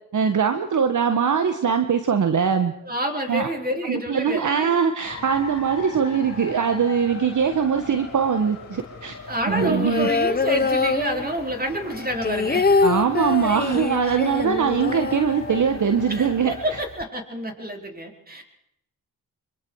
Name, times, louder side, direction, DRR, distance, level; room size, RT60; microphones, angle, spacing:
voice 1, 0.1-2.7 3.3-3.5 3.8-9.2 9.5-10.1 12.8-16.8, right 6 dB, 55° right, 7 dB, 1.5 m, -22 dB
voice 2, 2.8-4.7 9.3-12.7 16.1-18.4, right 1 dB, 25° right, 3 dB, 4.6 m, -28 dB
sound 1, 5.0-16.8, left 5 dB, 45° left, 4.4 m, -40 dB
sound 2, 9.5-11.6 11.9-15.9 16.2-16.3 16.5-17.0, left 4 dB, 25° left, 1.0 m, -24 dB
25.0 x 23.0 x 4.8 m, 0.78 s
cardioid pair, 60°, 37 cm